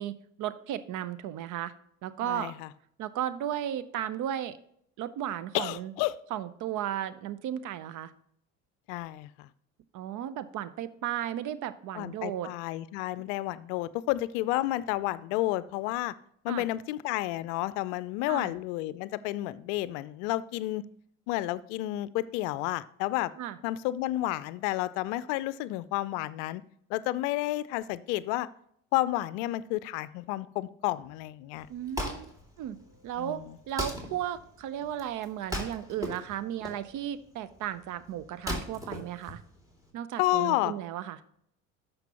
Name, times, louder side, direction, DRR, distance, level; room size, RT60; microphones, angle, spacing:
voice 1, 0.0-1.7 2.0-2.5 3.0-4.6 5.0-5.9 6.3-8.1 9.9-12.5 16.5-16.7 18.3-18.5 23.4-23.6 31.7-39.4 39.9-41.2, right 11 dB, 50° right, 15 dB, 0.7 m, -35 dB
voice 2, 2.2-2.7 5.5-6.1 8.9-9.5 11.9-16.1 16.4-20.8 21.3-23.3 23.6-26.6 26.9-28.5 28.9-31.7 33.2-33.6 40.2-40.7, left 16 dB, 60° left, 17 dB, 0.5 m, -31 dB
Wood, 31.5-39.9, left 1 dB, 10° right, 2.4 m, -39 dB
12.5 x 5.2 x 2.9 m, 0.69 s
hypercardioid pair, 65°, 40 cm